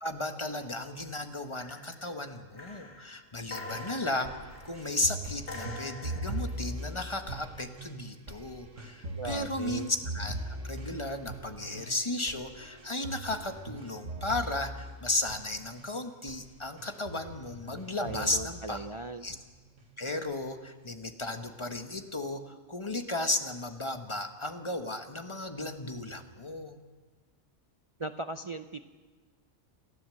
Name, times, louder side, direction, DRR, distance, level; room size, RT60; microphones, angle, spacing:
voice 1, 0.0-4.4 4.6-18.9 19.2-19.4 20.0-26.8, left 2 dB, 20° left, 7 dB, 1.3 m, -35 dB
sound 1, 1.0-1.3 1.6-2.1 2.5-5.0 5.5-6.6 9.6-9.8, left 2 dB, 50° left, 3.1 m, -45 dB
sound 2, 3.7-15.9 16.3-16.5 16.8-18.9 19.3-19.8 20.3-20.4, right 1 dB, 60° right, 2.0 m, -41 dB
voice 2, 9.1-9.9 18.0-19.3 28.0-28.8, right 2 dB, 45° right, 9 dB, 0.4 m, -38 dB
28.5 x 12.5 x 7.7 m, 1.4 s
omnidirectional pair, 1.4 m